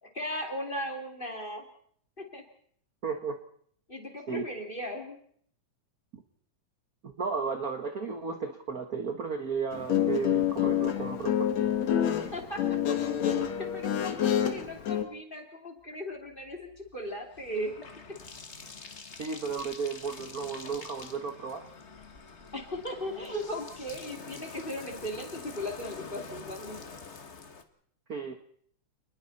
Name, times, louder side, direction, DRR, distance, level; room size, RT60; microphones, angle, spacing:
voice 1, 0.0-1.7 2.2-2.4 3.9-5.2 12.3-13.0 13.3-17.7 22.5-26.8, equal, 15° left, 2 dB, 2.9 m, -37 dB
voice 2, 3.0-3.4 4.3-4.4 6.1-6.2 7.0-11.5 19.2-21.6 28.1-28.3, right 5 dB, 50° right, 6 dB, 1.1 m, -34 dB
Guitar, 9.7-15.0, left 10 dB, 60° left, 2.7 m, -27 dB
Bathtub (filling or washing), 16.3-27.6, left 4 dB, 40° left, 1.0 m, -46 dB
29.5 x 20.5 x 4.3 m, 0.62 s
omnidirectional pair, 3.6 m